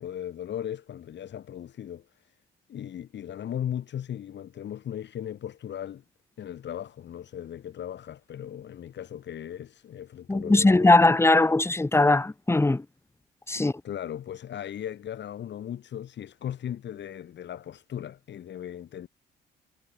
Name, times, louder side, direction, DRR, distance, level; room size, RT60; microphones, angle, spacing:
voice 1, 0.0-2.3 2.7-6.0 6.4-10.9 13.6-19.1, left 10 dB, 65° left, 2.9 m, -37 dB
voice 2, 10.3-12.8 13.5-13.7, left 2 dB, 15° left, 1.3 m, -20 dB
cardioid pair, 90°, 20 cm